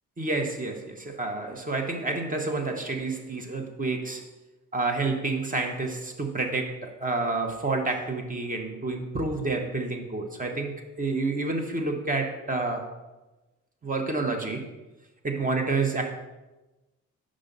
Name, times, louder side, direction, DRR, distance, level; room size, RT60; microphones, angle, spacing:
voice 1, 0.2-4.2 4.7-12.9 13.8-14.7 15.2-16.1, right 3 dB, 25° right, 4 dB, 1.0 m, -29 dB
5.4 x 5.1 x 5.2 m, 1.1 s
cardioid pair, 90°, 30 cm